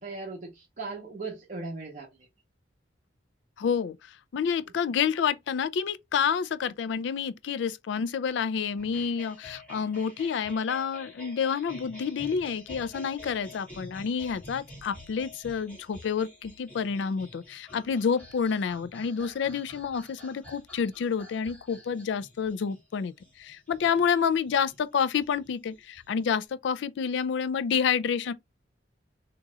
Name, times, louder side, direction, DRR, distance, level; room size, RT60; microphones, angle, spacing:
voice 1, 0.0-2.3, right 3 dB, 45° right, 1.0 m, -38 dB
voice 2, 3.6-4.0 4.3-28.3, left 6 dB, 70° left, 0.3 m, -29 dB
sound 1, 8.8-26.4, left 1 dB, 10° left, 1.9 m, -49 dB
3.8 x 2.9 x 2.3 m
head